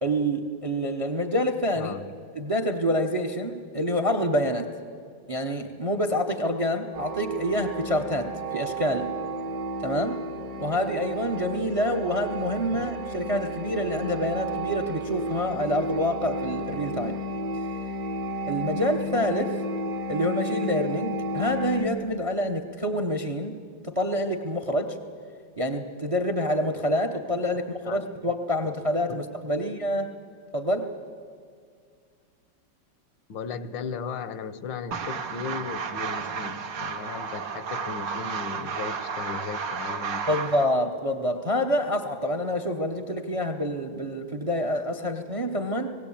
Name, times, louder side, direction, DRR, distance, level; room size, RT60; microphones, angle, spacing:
voice 1, 0.0-1.9 2.3-4.7 5.3-9.1 9.8-10.2 10.6-17.2 18.5-19.5 20.1-23.6 23.8-25.0 25.6-30.1 30.5-30.9 40.3-45.9, equal, 30° right, 7 dB, 0.7 m, -27 dB
sound 1, 6.9-21.9, right 1 dB, 55° right, 1.6 m, -32 dB
voice 2, 33.3-40.4, left 6 dB, 80° left, 12 dB, 1.5 m, -37 dB
sound 2, 34.9-40.7, right 5 dB, 70° right, 1.9 m, -32 dB
20.0 x 16.5 x 8.6 m, 2.2 s
omnidirectional pair, 2.1 m